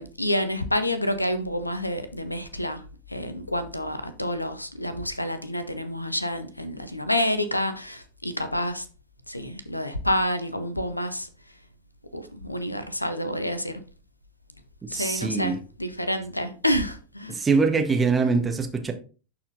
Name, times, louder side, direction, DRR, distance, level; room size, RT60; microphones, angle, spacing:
voice 1, 0.0-2.8 3.1-8.9 9.3-11.3 12.1-13.8 14.9-17.4, left 1 dB, 85° left, 0.7 m, -28 dB
voice 2, 14.9-15.6 17.3-18.9, right 4 dB, 15° right, 1.1 m, -23 dB
11.5 x 4.3 x 2.6 m
figure-of-eight pair, 90°, 0 cm